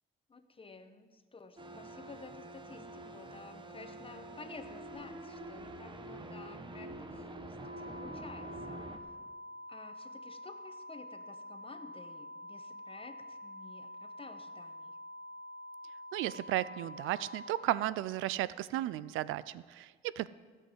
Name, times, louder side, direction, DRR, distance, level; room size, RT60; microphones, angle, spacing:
voice 1, 0.3-8.9 9.7-15.0, left 4 dB, 25° left, 9 dB, 1.1 m, -52 dB
sound 1, 1.6-9.0, right 1 dB, 25° right, 1.1 m, -46 dB
sound 2, 7.6-17.6, left 1 dB, 40° right, 4.8 m, -47 dB
voice 2, 16.1-20.3, right 14 dB, 90° right, 18 dB, 0.4 m, -34 dB
16.0 x 5.5 x 7.9 m, 1.5 s
cardioid pair, 90°, 20 cm